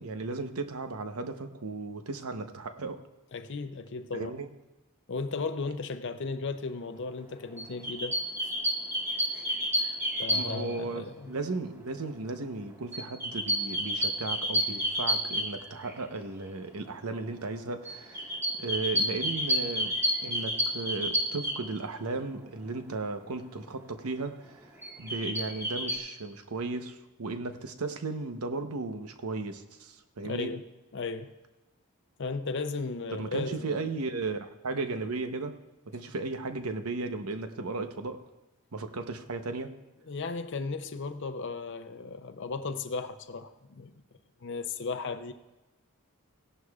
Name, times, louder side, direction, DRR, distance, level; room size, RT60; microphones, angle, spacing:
voice 1, 0.0-3.0 4.1-4.5 10.3-20.0 20.2-24.7 25.0-30.6 33.1-38.2 38.7-39.8, right 3 dB, 90° right, 0.9 m, -35 dB
voice 2, 3.3-4.4 5.1-8.1 8.4-8.5 9.3-9.5 10.2-11.3 30.2-30.6 30.9-31.3 32.2-33.9 40.1-43.9 44.4-45.3, left 4 dB, 55° left, 0.6 m, -35 dB
sound 1, 7.6-10.8 12.9-16.0 17.8-21.6 24.8-26.0, equal, 10° right, 1.6 m, -30 dB
17.0 x 11.0 x 2.4 m
head